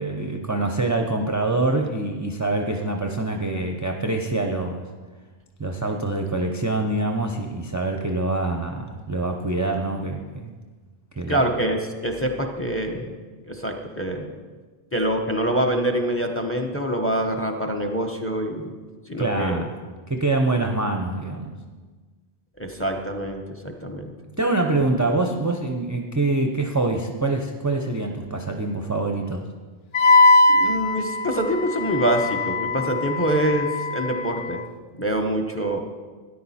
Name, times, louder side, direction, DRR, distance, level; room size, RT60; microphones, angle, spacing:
voice 1, 0.0-4.9 5.6-10.5 11.2-11.5 19.2-19.7 20.1-21.5 24.4-29.5, right 2 dB, 20° right, 2 dB, 0.6 m, -25 dB
voice 2, 11.3-13.1 13.5-14.3 14.9-18.8 19.1-19.6 22.6-24.1 30.5-34.6 35.0-35.8, right 1 dB, 15° left, 4 dB, 0.8 m, -25 dB
Wind instrument woodwind instrument, 29.9-34.6, left 2 dB, 50° left, 0.8 m, -21 dB
13.5 x 10.0 x 4.2 m, 1.4 s
omnidirectional pair, 1.2 m